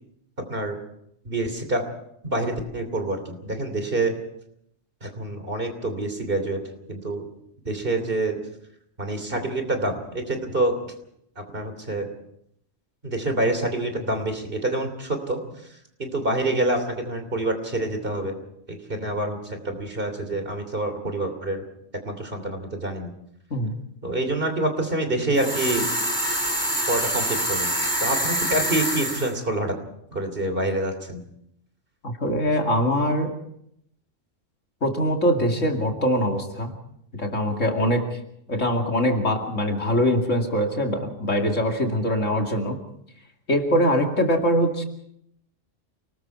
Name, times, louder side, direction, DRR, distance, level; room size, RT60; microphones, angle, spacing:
voice 1, 1.2-1.8 2.2-4.2 5.0-6.6 6.9-7.2 7.6-8.4 9.0-10.7 11.4-12.1 13.0-15.4 16.0-18.4 18.7-21.6 22.0-23.1 24.0-25.9 26.9-27.7 28.0-29.8 30.1-31.2, right 2 dB, 45° right, 7 dB, 3.3 m, -26 dB
sound 1, 25.3-29.3, right 1 dB, 20° left, 5.7 m, -25 dB
voice 2, 32.0-33.3 34.8-36.7 37.1-38.2 38.5-42.8 43.5-44.8, equal, 70° left, 2 dB, 2.9 m, -23 dB
28.5 x 19.5 x 4.6 m, 0.74 s
omnidirectional pair, 1.3 m